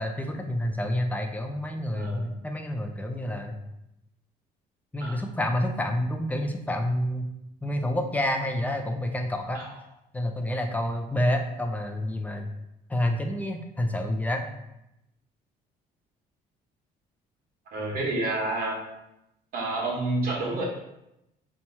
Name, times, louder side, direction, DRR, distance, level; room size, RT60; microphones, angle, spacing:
voice 1, 0.0-3.6 4.9-7.3 7.6-9.6 10.1-12.5 12.9-14.5, left 1 dB, 10° left, 4 dB, 0.4 m, -28 dB
voice 2, 17.7-18.8 19.5-20.6, right 2 dB, 60° right, -2 dB, 1.1 m, -29 dB
2.9 x 2.3 x 4.1 m, 0.85 s
cardioid pair, 110°, 17 cm